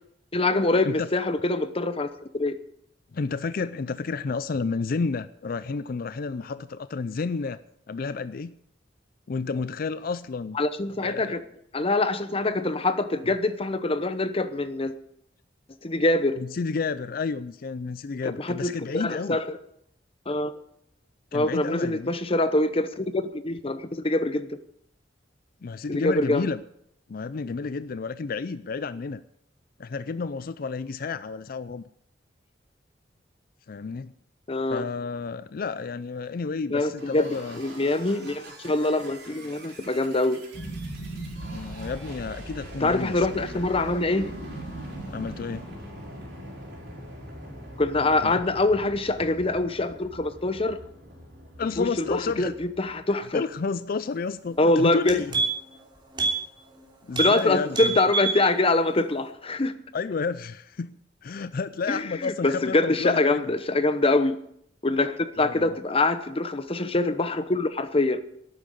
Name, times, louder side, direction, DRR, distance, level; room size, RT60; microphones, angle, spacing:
voice 1, 0.3-2.1 2.3-2.6 10.5-11.4 11.7-14.9 15.8-16.4 18.4-19.6 20.3-20.5 21.3-24.6 25.9-26.5 34.5-34.8 36.7-37.3 37.5-40.4 42.8-44.3 47.8-50.8 51.8-53.4 54.6-55.2 57.2-59.7 61.9-64.4 64.8-68.2, left 2 dB, 30° left, 12 dB, 0.9 m, -24 dB
voice 2, 3.1-7.6 7.9-8.6 9.3-10.6 11.0-11.4 16.4-19.4 21.3-22.2 25.6-26.6 27.1-29.2 29.8-31.9 33.7-34.1 34.7-37.6 41.5-43.7 45.1-45.7 48.2-48.4 51.6-52.5 53.3-55.3 57.0-58.0 59.9-63.6 65.4-65.8, left 4 dB, 55° left, 14 dB, 0.4 m, -31 dB
sound 1, 37.0-53.6, equal, 65° right, 4.6 m, -44 dB
sound 2, 40.5-45.6, right 1 dB, 80° left, 3.5 m, -38 dB
sound 3, 54.5-54.6 54.9-55.8 56.1-56.4 56.7-56.8 57.1-57.4 57.7-58.4 58.8-58.9, right 4 dB, 25° right, 3.1 m, -27 dB
11.5 x 9.3 x 8.4 m, 0.73 s
head